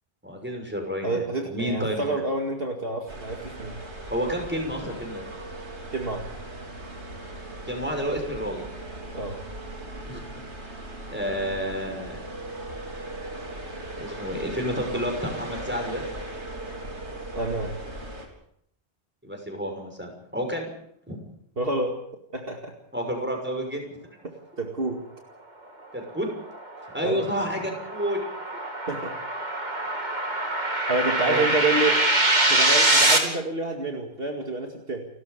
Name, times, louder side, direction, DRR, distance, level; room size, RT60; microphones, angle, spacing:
voice 1, 0.2-1.2 1.5-2.0 4.1-5.2 7.7-8.6 10.1-10.7 11.1-12.2 14.0-16.0 19.2-20.7 21.1-21.2 22.9-24.0 25.9-26.3 26.9-28.2 31.1-31.5, equal, 10° right, 3 dB, 6.2 m, -30 dB
voice 2, 1.0-3.8 5.9-6.3 9.1-9.4 17.3-17.8 21.6-22.0 22.3-22.7 24.2-24.3 24.6-25.0 27.0-27.2 28.9-29.1 30.9-35.1, right 2 dB, 60° right, 2 dB, 2.4 m, -28 dB
sound 1, 3.1-18.3, right 1 dB, 85° right, 4.1 m, -38 dB
sound 2, 26.3-33.2, right 2 dB, 40° right, 3.0 m, -24 dB
30.0 x 13.5 x 6.8 m, 0.70 s
omnidirectional pair, 1.1 m